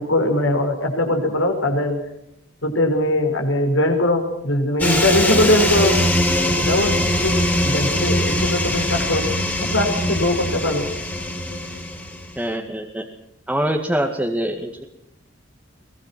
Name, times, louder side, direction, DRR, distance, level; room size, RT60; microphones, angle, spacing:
voice 1, 0.0-2.0 2.6-6.0 6.6-7.0 7.2-7.3 7.6-9.2 9.6-10.9, left 1 dB, 80° left, 4 dB, 5.7 m, -20 dB
sound 1, 4.8-12.4, left 1 dB, 10° left, 3.5 m, -21 dB
voice 2, 12.4-13.1 13.5-14.8, right 1 dB, 5° right, 1 dB, 2.1 m, -24 dB
23.0 x 20.5 x 6.1 m, 0.78 s
head